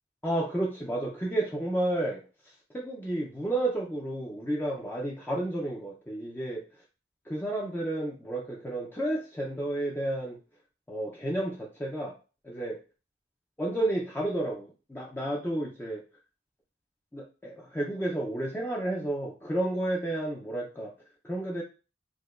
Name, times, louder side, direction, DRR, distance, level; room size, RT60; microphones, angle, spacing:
voice 1, 0.2-2.2 2.7-6.6 7.3-10.4 10.9-12.1 12.4-12.8 13.6-16.0 17.1-20.9 21.2-21.6, right 1 dB, 10° left, -3 dB, 0.4 m, -31 dB
4.8 x 2.2 x 2.3 m, 0.34 s
head